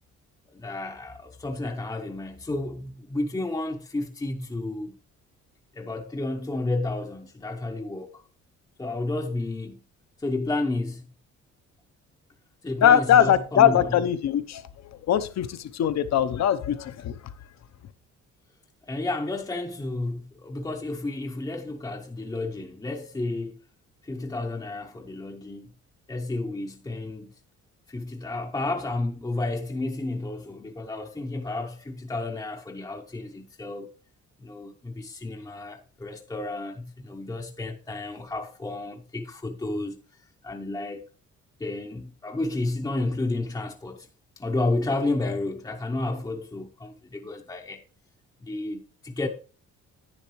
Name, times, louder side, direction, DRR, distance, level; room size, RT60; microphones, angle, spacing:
voice 1, 0.5-5.0 5.7-8.2 8.8-9.8 10.2-11.0 12.6-14.0 18.8-23.6 24.0-25.7 26.1-27.3 27.9-33.9 34.4-40.0 40.4-41.0 41.6-44.1 44.4-47.8 48.4-49.3, left 2 dB, 15° left, 0.7 m, -31 dB
voice 2, 12.8-14.6 14.9-17.2, left 10 dB, 60° left, 0.8 m, -21 dB
10.5 x 9.4 x 3.1 m
cardioid pair, 90°, 30 cm